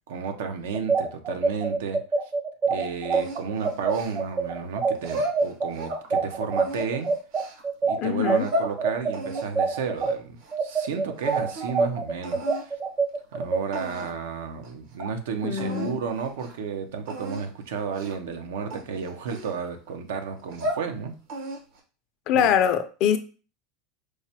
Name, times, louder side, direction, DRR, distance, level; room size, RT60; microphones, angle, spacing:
voice 1, 0.1-2.0 2.7-7.1 7.9-12.8 13.3-21.1 22.3-22.5, right 6 dB, 85° right, 0.6 m, -32 dB
sound 1, 0.7-10.1 10.5-13.6, right 4 dB, 30° right, 0.6 m, -25 dB
sound 2, 3.1-4.5 5.0-6.1 6.5-7.6 8.2-8.7 9.1-10.9 11.2-11.8 12.2-12.7 13.3-13.4 13.7-14.3 14.6-14.7 15.0-15.1 15.6-16.0 16.3-16.5 17.1-17.5 17.9-18.3 18.7-19.9 20.4-20.9 21.3-21.8, equal, 65° right, 0.9 m, -34 dB
voice 2, 8.0-8.5 15.4-16.0 22.3-23.2, left 9 dB, 55° left, 0.4 m, -23 dB
4.7 x 2.1 x 2.8 m
supercardioid pair, 130°, 0 cm